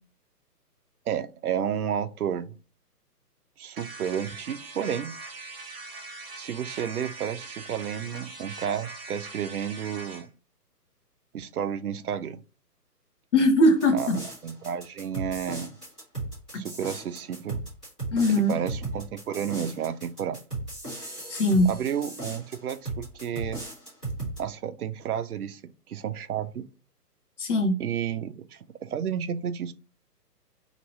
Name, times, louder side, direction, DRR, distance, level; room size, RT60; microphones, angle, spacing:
voice 1, 1.1-2.6 3.6-5.2 6.3-10.3 11.3-12.4 13.9-14.1 14.4-15.8 16.5-17.6 18.3-20.4 21.7-23.6 24.4-25.6 25.9-26.6 27.8-29.7, right 8 dB, 65° right, 0.6 m, -31 dB
sound 1, 3.8-10.3, right 3 dB, 40° right, 1.0 m, -41 dB
voice 2, 13.3-14.2 18.1-18.5 21.3-21.7 27.4-27.7, left 1 dB, 45° left, 1.1 m, -20 dB
sound 2, 13.8-24.4, right 2 dB, 5° left, 0.5 m, -36 dB
2.9 x 2.6 x 4.3 m
figure-of-eight pair, 135°, 48 cm